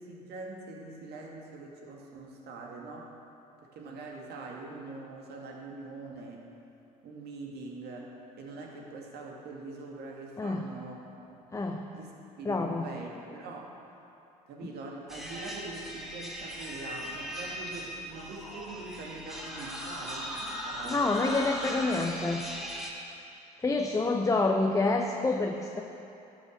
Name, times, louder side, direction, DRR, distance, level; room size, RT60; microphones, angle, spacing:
voice 1, 0.0-3.1 3.6-6.5 7.0-11.4 11.9-12.1 12.4-13.7 14.5-21.1, right 3 dB, 55° right, -1 dB, 2.2 m, -43 dB
voice 2, 11.5-11.8 12.4-12.9 20.9-22.4 23.6-25.8, left 3 dB, 15° left, 3 dB, 0.8 m, -27 dB
sound 1, 15.1-22.9, equal, ahead, 2.5 m, -38 dB
12.0 x 6.5 x 8.2 m, 2.8 s
hypercardioid pair, 65°, 21 cm